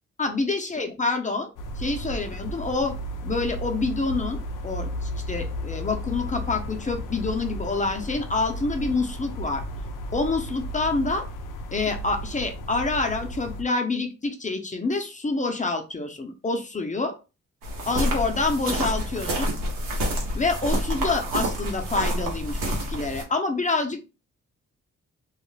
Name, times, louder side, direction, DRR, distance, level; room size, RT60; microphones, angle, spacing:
voice 1, 0.2-1.5 1.8-2.9 3.2-9.6 10.1-11.2 11.7-17.1 17.9-19.5 20.3-24.0, left 3 dB, 25° left, 5 dB, 0.7 m, -27 dB
sound 1, 1.6-13.6, equal, 75° left, 0.5 m, -34 dB
sound 2, 17.6-23.2, equal, 85° right, 0.8 m, -28 dB
2.4 x 2.0 x 3.1 m, 0.31 s
supercardioid pair, 45°, 32 cm